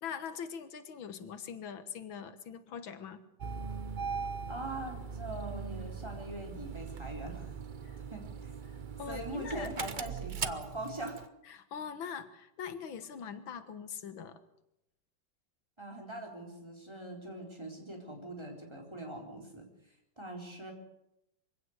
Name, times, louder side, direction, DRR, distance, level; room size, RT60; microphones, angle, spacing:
voice 1, 0.0-3.2 7.8-8.0 8.7-9.7 11.4-14.4, left 7 dB, 90° left, 11 dB, 2.2 m, -42 dB
Engine starting, 3.4-11.3, right 6 dB, 55° right, 0.5 m, -40 dB
voice 2, 4.5-7.5 8.1-8.5 9.1-11.2 15.8-19.7 20.2-20.7, right 1 dB, 15° right, 1 dB, 4.1 m, -42 dB
23.5 x 16.5 x 8.0 m, 0.84 s
omnidirectional pair, 2.1 m